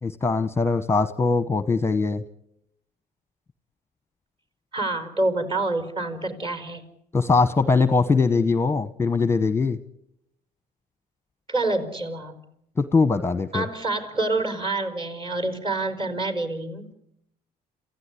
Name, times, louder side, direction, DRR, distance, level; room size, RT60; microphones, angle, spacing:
voice 1, 0.0-2.2 7.1-9.8 12.8-13.6, left 4 dB, 15° left, 13 dB, 1.0 m, -21 dB
voice 2, 4.7-6.9 11.5-12.4 13.5-16.9, right 2 dB, 30° right, 10 dB, 4.8 m, -27 dB
27.5 x 16.0 x 9.8 m, 0.78 s
cardioid pair, 110°, 17 cm